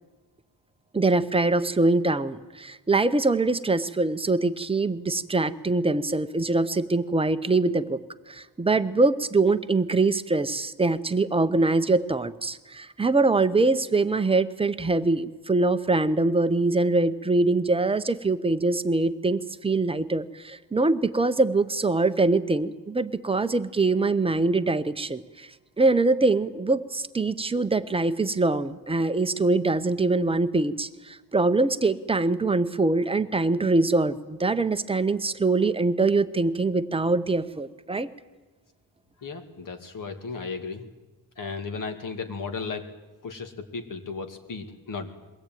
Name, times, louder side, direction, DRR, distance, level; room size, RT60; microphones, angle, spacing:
voice 1, 0.9-8.0 8.3-25.5 25.8-38.1, right 3 dB, 15° right, 10 dB, 0.7 m, -23 dB
voice 2, 39.2-40.8 41.4-42.9 43.2-45.1, left 4 dB, 50° left, 7 dB, 2.3 m, -35 dB
22.5 x 17.0 x 9.2 m, 1.2 s
wide cardioid pair, 150°, 42 cm